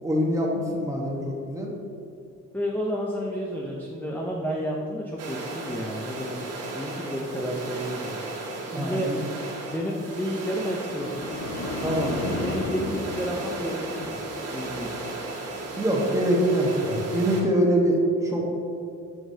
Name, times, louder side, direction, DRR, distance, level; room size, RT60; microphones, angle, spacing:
voice 1, 0.0-1.7 8.7-9.2 11.8-12.3 15.8-18.5, right 1 dB, 10° right, -2 dB, 1.1 m, -24 dB
voice 2, 2.5-6.5 6.7-8.2 8.7-9.1 9.7-11.1 12.4-14.2 14.5-15.0, equal, 5° left, -2 dB, 0.6 m, -31 dB
sound 1, 5.2-17.4, right 2 dB, 55° right, 1.3 m, -35 dB
sound 2, 10.8-14.3 14.6-15.0, left 2 dB, 60° left, 0.8 m, -34 dB
6.0 x 6.0 x 2.7 m, 2.4 s
cardioid pair, 90°, 30 cm